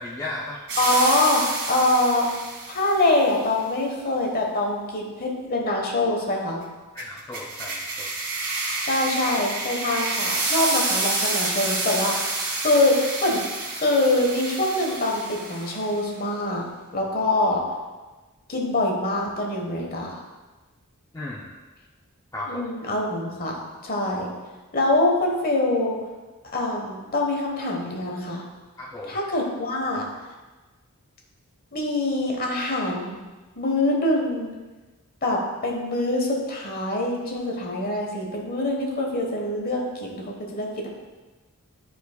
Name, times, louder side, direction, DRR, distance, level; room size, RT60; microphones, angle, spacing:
voice 1, 0.0-0.6 6.9-8.1 21.1-21.5 22.3-22.6 28.8-29.2, left 2 dB, 15° left, -4 dB, 0.5 m, -35 dB
sound 1, 0.7-3.0 7.0-15.9, right 3 dB, 50° right, 1.9 m, -28 dB
voice 2, 0.8-2.3 2.7-6.6 8.8-13.4 13.7-16.6 16.9-17.6 18.5-20.2 22.5-24.3 24.7-26.0 26.5-28.4 29.1-30.1 31.7-33.2 33.6-34.5 35.2-40.9, left 2 dB, 40° left, 0 dB, 1.2 m, -24 dB
12.0 x 4.6 x 2.3 m, 1.2 s
head